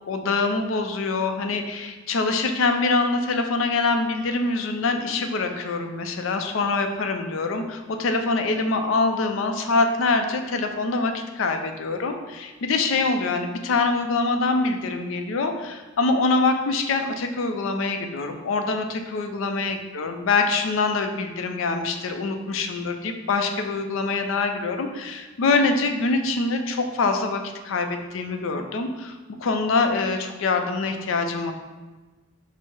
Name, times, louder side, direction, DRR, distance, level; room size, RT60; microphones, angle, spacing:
voice 1, 0.1-31.5, left 3 dB, 80° left, 6 dB, 0.4 m, -24 dB
4.4 x 2.0 x 4.5 m, 1.2 s
head